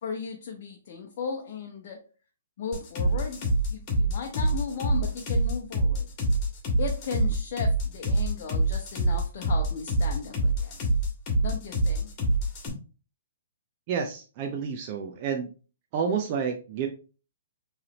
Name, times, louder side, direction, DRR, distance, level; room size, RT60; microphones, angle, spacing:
voice 1, 0.0-2.0 2.6-6.1 6.8-10.8 11.4-12.1, left 5 dB, 50° left, 0.7 m, -36 dB
sound 1, 2.7-12.7, right 2 dB, 35° left, 1.6 m, -25 dB
voice 2, 13.9-15.5 15.9-16.9, right 6 dB, 40° right, 0.6 m, -29 dB
4.7 x 3.2 x 2.9 m
hypercardioid pair, 125°, 0 cm